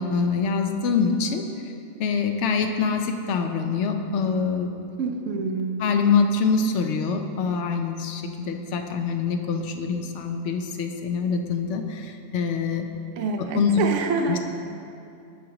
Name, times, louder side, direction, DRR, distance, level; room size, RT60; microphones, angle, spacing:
voice 1, 0.0-1.4 2.0-4.8 5.8-12.9 13.5-13.7 14.3-14.4, left 5 dB, 65° left, 5 dB, 0.9 m, -25 dB
voice 2, 5.0-5.9 13.2-14.4, right 4 dB, 70° right, 4 dB, 0.9 m, -27 dB
14.5 x 5.2 x 2.9 m, 2.6 s
omnidirectional pair, 1.4 m